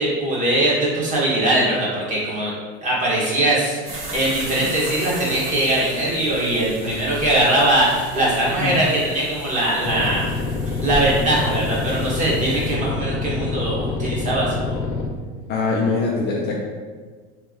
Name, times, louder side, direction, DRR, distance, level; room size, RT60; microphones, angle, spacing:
voice 1, 0.0-2.5 2.8-10.4 10.7-14.8, right 1 dB, 25° right, -6 dB, 1.2 m, -21 dB
sound 1, 3.8-12.7, right 2 dB, 85° right, 1.4 m, -35 dB
sound 2, 9.8-15.1, left 3 dB, 80° left, 0.7 m, -26 dB
voice 2, 15.5-16.5, left 4 dB, 35° left, -3 dB, 0.4 m, -23 dB
3.1 x 2.9 x 3.6 m, 1.6 s
supercardioid pair, 140°, 32 cm